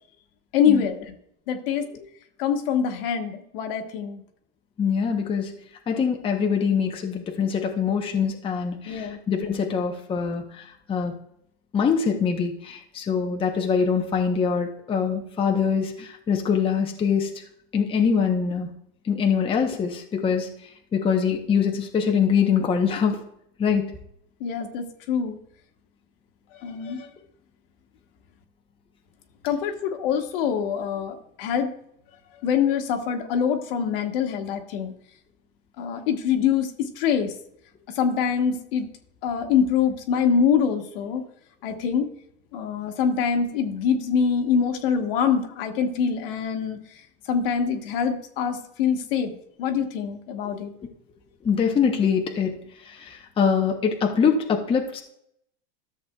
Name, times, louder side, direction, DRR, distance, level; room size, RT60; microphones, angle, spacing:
voice 1, 0.5-1.1 1.5-1.9 2.4-4.2 8.8-9.2 24.4-25.4 26.6-27.1 29.4-31.7 32.4-34.9 35.8-37.3 37.9-38.9 39.2-41.2 41.6-42.1 42.5-46.8 47.3-49.3 49.6-50.7, left 7 dB, 65° left, 5 dB, 1.4 m, -24 dB
voice 2, 4.8-5.5 5.9-11.1 11.7-17.4 17.7-18.7 19.0-20.5 20.9-23.2 23.6-23.9 50.4-50.5 51.4-52.6 52.8-55.0, left 6 dB, 20° left, 2 dB, 0.8 m, -24 dB
13.5 x 7.3 x 2.3 m, 0.72 s
supercardioid pair, 140°, 30 cm